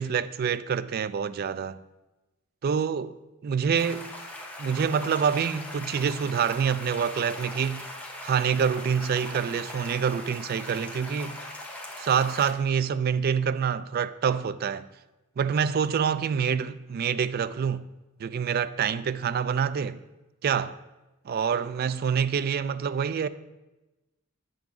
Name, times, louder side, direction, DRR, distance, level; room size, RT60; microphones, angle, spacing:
voice 1, 0.0-1.8 2.6-3.1 3.4-4.1 4.6-7.9 8.2-11.4 12.0-14.9 15.4-17.9 18.2-20.0 20.4-20.8 21.2-23.3, right 7 dB, 45° right, 0.3 m, -26 dB
sound 1, 3.8-12.5, left 1 dB, 5° left, 0.8 m, -40 dB
7.8 x 3.8 x 5.9 m
head